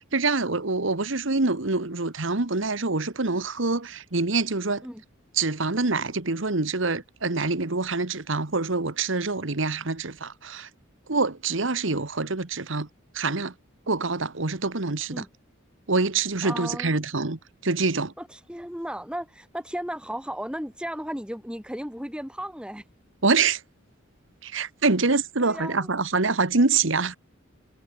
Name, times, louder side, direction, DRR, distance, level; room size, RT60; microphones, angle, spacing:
voice 1, 0.1-4.9 5.3-10.7 11.1-12.9 13.1-13.5 13.9-15.2 15.9-18.1 23.2-23.6 24.4-27.2, right 3 dB, 65° right, 1.5 m, -25 dB
voice 2, 16.4-17.0 18.2-22.8 25.4-25.9, equal, 5° right, 6.1 m, -35 dB
head